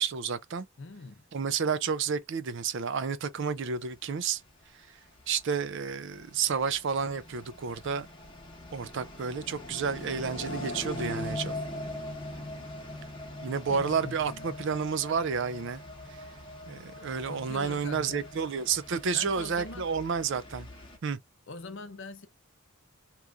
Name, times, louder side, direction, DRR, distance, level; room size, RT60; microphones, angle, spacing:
voice 1, 0.0-0.7 1.3-4.4 5.3-8.1 8.7-11.5 13.4-15.8 16.1-16.2 16.7-20.7 21.0-21.2, right 6 dB, 60° right, 0.4 m, -30 dB
voice 2, 0.8-1.2 12.7-13.1 13.7-14.6 17.3-18.3 19.1-19.9 21.5-22.3, left 3 dB, 60° left, 0.6 m, -43 dB
sound 1, 4.3-21.0, left 1 dB, 25° left, 0.9 m, -42 dB
3.0 x 2.5 x 3.4 m
head